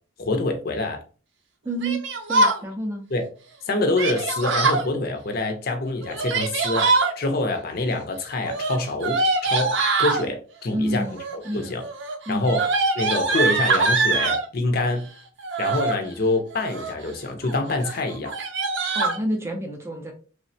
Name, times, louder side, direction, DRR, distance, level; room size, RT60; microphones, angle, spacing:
voice 1, 0.2-1.0 3.1-3.3 3.7-6.9 7.2-11.1 11.3-11.8 12.3-12.7 12.9-15.1 15.6-18.3, left 2 dB, 50° left, 0.5 m, -26 dB
voice 2, 1.6-2.0 2.3-3.0 10.7-11.2 11.4-11.7 12.3-12.5 18.9-20.1, right 1 dB, 15° right, 0.4 m, -28 dB
Yell, 1.8-2.6 4.0-4.8 6.0-7.1 8.4-10.2 11.1-11.5 11.8-14.5 15.4-16.0 16.5-17.0 17.4-17.6 17.8-17.9 18.3-19.2, right 3 dB, 65° right, 0.5 m, -23 dB
3.2 x 2.1 x 2.6 m
head